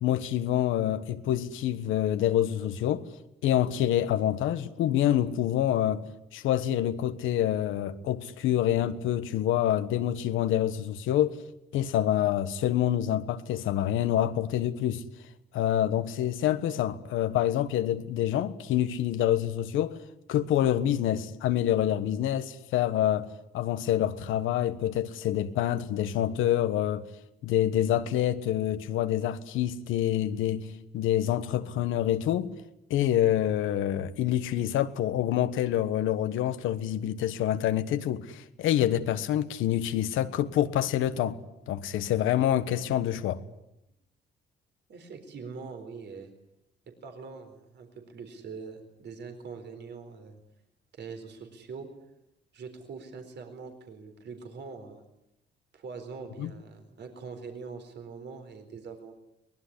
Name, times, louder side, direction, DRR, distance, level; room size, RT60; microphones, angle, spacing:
voice 1, 0.0-3.1 3.4-6.0 6.3-11.4 11.7-15.0 15.5-20.0 20.3-23.3 23.5-27.1 27.4-30.7 30.9-32.5 32.9-41.4 41.7-43.4 56.4-56.5, left 11 dB, 90° left, 1.4 m, -27 dB
voice 2, 44.9-46.3 47.0-50.4 50.9-51.9 52.5-55.0 55.7-59.1, right 5 dB, 60° right, 4.3 m, -43 dB
23.5 x 20.0 x 9.9 m
cardioid pair, 90°, 20 cm